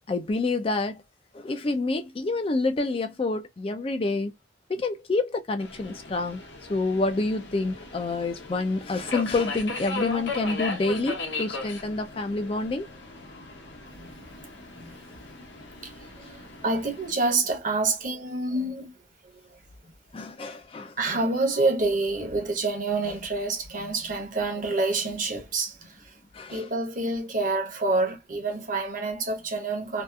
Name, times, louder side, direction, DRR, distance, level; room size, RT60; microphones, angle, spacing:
voice 1, 0.1-1.0 1.3-4.3 4.7-6.4 6.7-12.9 20.1-20.9 26.3-26.7, left 3 dB, 30° left, 0.3 m, -28 dB
Subway metro underground, 5.6-17.1, left 3 dB, 70° left, 0.8 m, -37 dB
voice 2, 16.6-18.9 21.0-25.7 26.5-30.0, right 3 dB, 45° right, 0.8 m, -27 dB
2.7 x 2.3 x 2.2 m
head